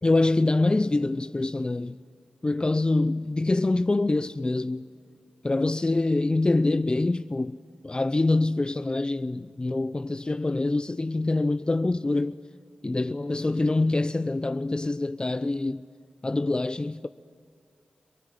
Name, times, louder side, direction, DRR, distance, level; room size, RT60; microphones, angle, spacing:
voice 1, 0.0-2.0 2.4-4.9 5.4-7.6 7.8-12.4 12.8-15.8 16.2-17.1, left 2 dB, 30° left, 0.6 m, -25 dB
27.5 x 19.0 x 9.3 m
cardioid pair, 40°, 3 cm